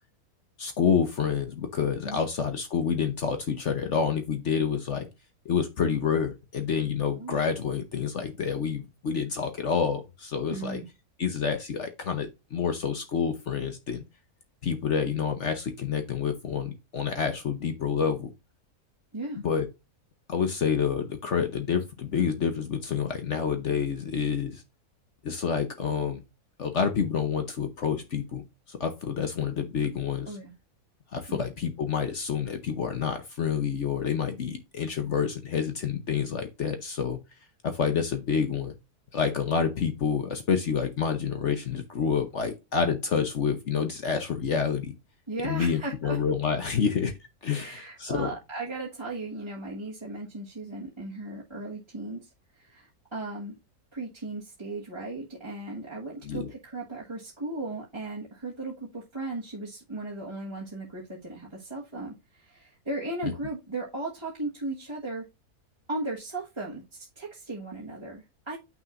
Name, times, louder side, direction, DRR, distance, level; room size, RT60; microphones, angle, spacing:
voice 1, 0.6-5.1 5.4-10.8 11.2-14.0 14.6-18.3 19.4-19.7 20.3-24.6 25.2-26.2 26.6-28.4 28.7-30.4 31.1-37.2 37.6-38.7 39.1-44.9 45.4-47.1 47.4-48.3 56.2-56.5 63.2-63.3, left 6 dB, 55° left, 7 dB, 1.1 m, -28 dB
voice 2, 10.5-10.8 19.1-19.4 30.3-30.5 31.3-31.4 45.3-46.2 47.5-53.5 53.9-65.2 65.9-68.6, right 2 dB, 20° right, -5 dB, 1.4 m, -36 dB
7.8 x 6.1 x 2.5 m, 0.25 s
omnidirectional pair, 1.6 m